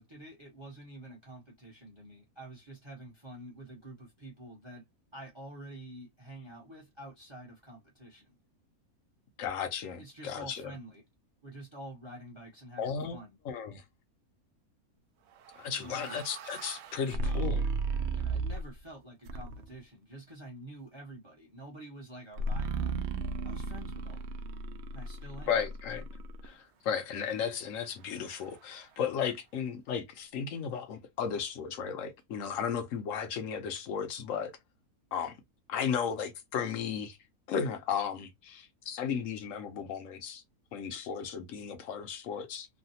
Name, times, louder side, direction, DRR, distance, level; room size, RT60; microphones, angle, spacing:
voice 1, 0.0-4.9 5.1-8.3 10.0-11.0 11.4-13.4 15.7-16.2 18.1-23.0 23.4-24.4 24.9-25.5, right 1 dB, 20° right, 1.0 m, -48 dB
voice 2, 9.4-10.7 12.8-13.2 13.4-13.8 15.6-17.7 25.5-26.1 26.4-34.5 35.1-35.4 35.7-37.2 37.5-40.4 40.7-42.7, left 7 dB, 65° left, 1.1 m, -35 dB
sound 1, 15.5-18.8 19.3-19.8 22.4-26.5, right 3 dB, 65° right, 0.7 m, -35 dB
3.2 x 2.3 x 2.7 m
omnidirectional pair, 1.5 m